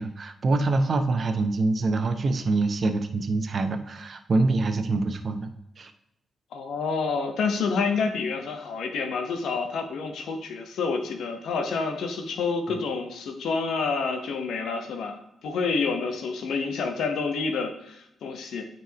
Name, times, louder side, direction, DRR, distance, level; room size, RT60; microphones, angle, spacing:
voice 1, 0.0-5.5 5.8-5.9 12.7-12.8, right 3 dB, 50° right, 8 dB, 0.8 m, -25 dB
voice 2, 6.5-18.6, left 4 dB, 70° left, 5 dB, 1.0 m, -28 dB
9.1 x 4.5 x 3.0 m, 0.83 s
hypercardioid pair, 45°, 0 cm